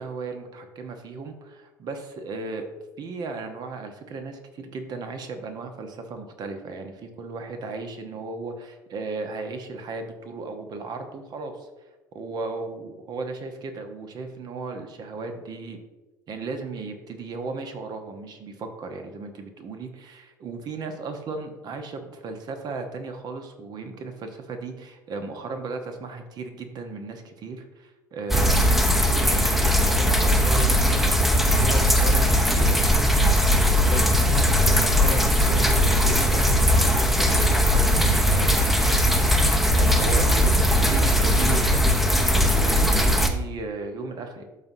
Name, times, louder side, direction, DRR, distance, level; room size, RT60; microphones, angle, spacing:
voice 1, 0.0-2.6 3.0-11.7 12.1-15.8 16.3-32.9 33.9-36.6 37.2-38.6 39.7-44.5, right 4 dB, 45° right, 6 dB, 1.1 m, -35 dB
sound 1, 28.3-43.3, equal, ahead, 0.8 m, -19 dB
12.0 x 4.2 x 2.7 m, 1.1 s
figure-of-eight pair, 65°, 10 cm